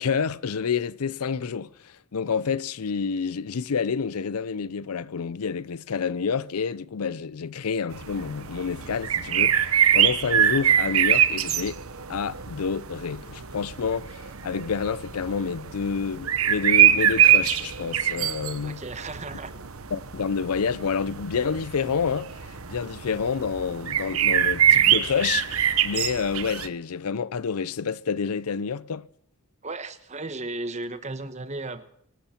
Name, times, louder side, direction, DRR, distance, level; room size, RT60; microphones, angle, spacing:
voice 1, 0.0-11.8 12.1-18.8 19.9-29.1, left 6 dB, 90° left, 0.6 m, -28 dB
sound 1, 7.9-26.7, right 10 dB, 75° right, 1.0 m, -24 dB
voice 2, 18.6-19.5 29.6-31.8, right 2 dB, 30° right, 1.2 m, -35 dB
24.5 x 11.5 x 4.4 m
head